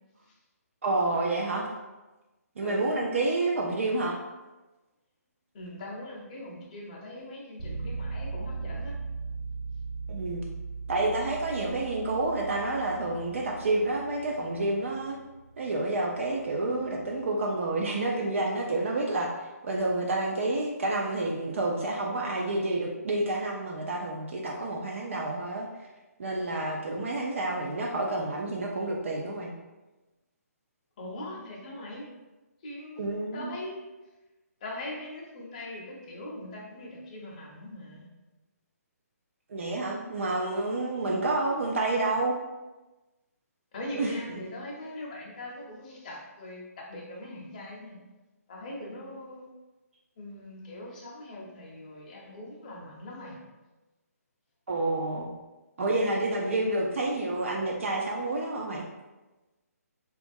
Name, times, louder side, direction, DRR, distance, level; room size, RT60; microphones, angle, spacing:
voice 1, 0.8-1.7 2.6-4.2 10.1-10.4 10.9-15.2 15.6-19.3 19.6-25.7 26.2-29.5 33.0-33.5 39.5-42.3 44.0-44.1 54.7-55.3 55.8-58.8, right 2 dB, 55° right, 0 dB, 0.4 m, -29 dB
voice 2, 5.5-8.9 31.0-32.1 32.6-33.9 34.6-38.1 43.7-48.0 48.5-49.5 50.2-53.4, left 1 dB, 30° left, -3 dB, 0.6 m, -41 dB
sound 1, 7.6-17.3, right 4 dB, 70° right, 1.2 m, -39 dB
2.9 x 2.3 x 2.6 m, 1.1 s
hypercardioid pair, 170°, 9 cm